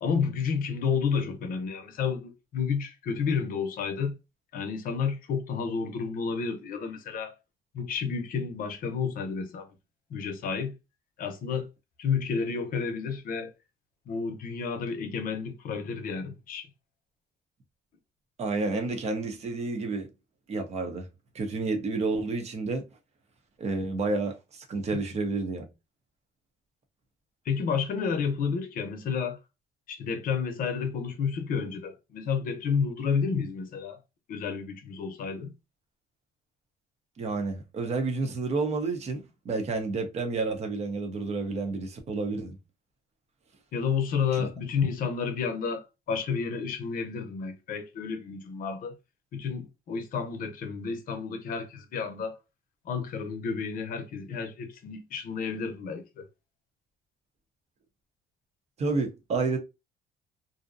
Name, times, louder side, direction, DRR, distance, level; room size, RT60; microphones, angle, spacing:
voice 1, 0.0-4.2 4.5-7.3 7.7-9.7 10.1-10.8 11.2-11.7 12.0-13.5 14.1-16.7 24.9-25.0 27.5-29.4 29.9-34.0 34.3-35.5 43.7-49.0 49.3-52.4 52.8-56.3, left 6 dB, 55° left, 0.7 m, -31 dB
voice 2, 18.4-20.1 20.5-21.1 21.3-22.8 23.6-25.7 37.2-42.6 44.3-44.5 58.8-59.6, right 3 dB, 40° right, 0.7 m, -30 dB
2.6 x 2.1 x 2.5 m
cardioid pair, 110°, 17 cm